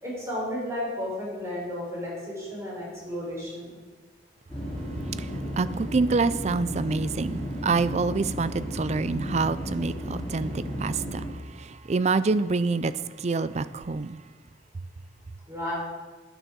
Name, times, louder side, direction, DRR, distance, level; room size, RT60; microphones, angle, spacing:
voice 1, 0.0-3.8 15.5-15.7, left 1 dB, 15° right, 4.6 m, -33 dB
sound 1, 4.5-11.3, equal, 5° left, 3.9 m, -34 dB
voice 2, 5.1-12.9 13.2-14.2, right 4 dB, 35° right, 0.4 m, -27 dB
9.8 x 9.2 x 6.7 m
head